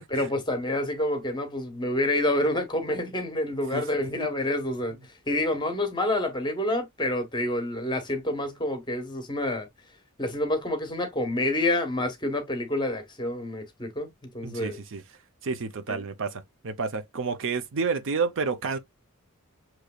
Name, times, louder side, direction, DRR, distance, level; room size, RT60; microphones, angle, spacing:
voice 1, 0.1-5.0 5.3-9.7 10.2-14.8 15.9-16.0, left 1 dB, 20° left, 1.2 m, -28 dB
voice 2, 3.7-4.3 14.4-15.0 15.4-18.8, right 4 dB, 60° right, 0.6 m, -30 dB
6.6 x 3.0 x 2.3 m
head